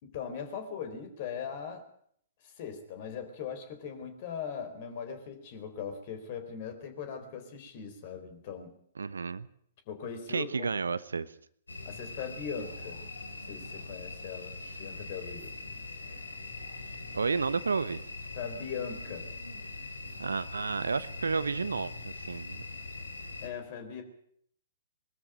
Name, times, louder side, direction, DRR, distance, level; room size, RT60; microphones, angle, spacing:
voice 1, 0.0-1.8 2.4-8.7 9.9-11.0 11.8-13.0 13.4-15.5 18.3-19.3 23.4-24.0, left 7 dB, 40° left, 8 dB, 4.2 m, -40 dB
voice 2, 9.0-9.5 10.3-11.3 17.1-18.0 20.2-22.6, right 4 dB, 70° right, 17 dB, 0.9 m, -31 dB
sound 1, 11.7-23.5, left 3 dB, 75° left, 3.2 m, -42 dB
22.0 x 13.5 x 9.1 m, 0.65 s
figure-of-eight pair, 115°, 0 cm